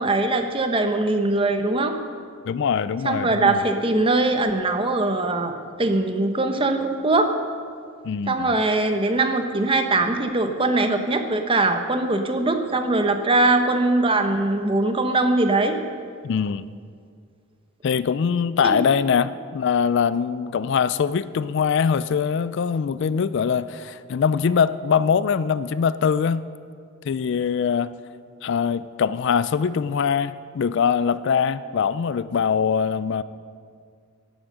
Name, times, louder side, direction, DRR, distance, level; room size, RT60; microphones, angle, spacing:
voice 1, 0.0-1.9 3.0-7.3 8.3-15.8 18.6-18.8, right 2 dB, 25° right, 6 dB, 0.9 m, -21 dB
voice 2, 2.5-3.6 8.0-8.5 16.2-16.7 17.8-26.5 27.0-27.9 28.4-33.2, left 6 dB, 55° left, 16 dB, 0.3 m, -22 dB
12.0 x 9.0 x 7.7 m, 2.2 s
head